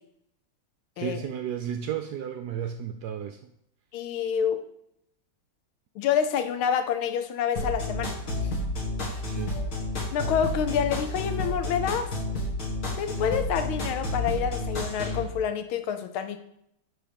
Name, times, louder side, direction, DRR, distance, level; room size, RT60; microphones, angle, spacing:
voice 1, 1.0-3.4 9.2-9.6, right 9 dB, 75° right, 7 dB, 0.9 m, -33 dB
voice 2, 3.9-4.6 6.0-8.2 10.1-12.1 13.0-16.4, left 8 dB, 90° left, 9 dB, 1.6 m, -27 dB
sound 1, 7.6-15.2, left 2 dB, 45° left, 2.3 m, -30 dB
10.5 x 4.1 x 5.2 m, 0.76 s
omnidirectional pair, 2.2 m